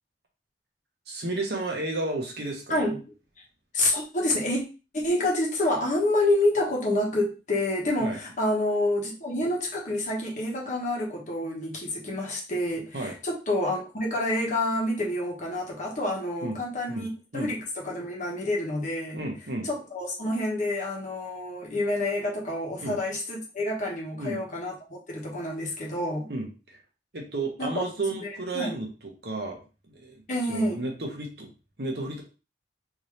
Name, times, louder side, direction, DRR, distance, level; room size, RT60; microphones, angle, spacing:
voice 1, 1.1-2.8 8.0-8.2 12.9-13.1 16.4-16.6 16.9-17.0 17.3-17.5 19.1-19.7 22.8-23.0 24.1-24.4 26.3-26.8 27.1-28.9 29.2-29.6 29.9-30.2 30.5-31.5 31.8-32.2, right 2 dB, 65° right, 1 dB, 1.0 m, -32 dB
voice 2, 3.7-4.6 4.9-19.2 19.6-26.3 27.6-27.9 28.2-28.8 30.3-30.8, left 1 dB, 45° left, -2 dB, 1.1 m, -28 dB
3.6 x 2.8 x 3.2 m, 0.32 s
head